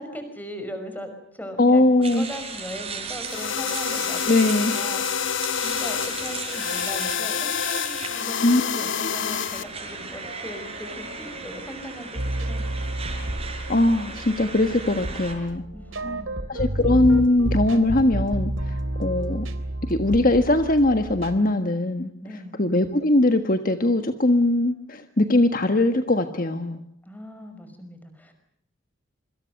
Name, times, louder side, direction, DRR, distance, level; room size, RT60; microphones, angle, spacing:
voice 1, 0.0-12.8 15.7-16.4 22.2-22.6 27.0-28.3, equal, 10° left, 7 dB, 5.6 m, -39 dB
voice 2, 1.6-2.3 4.3-4.7 8.4-8.6 13.7-15.6 16.0-16.2 16.5-19.5 19.9-22.1 22.6-26.8, left 2 dB, 45° left, 7 dB, 1.5 m, -21 dB
sound 1, 2.0-15.3, right 4 dB, 30° right, 6.4 m, -37 dB
sound 2, 3.3-9.6, left 8 dB, 70° left, 1.3 m, -27 dB
sound 3, 12.1-21.4, right 1 dB, 90° right, 3.2 m, -30 dB
27.0 x 26.0 x 6.6 m, 0.70 s
head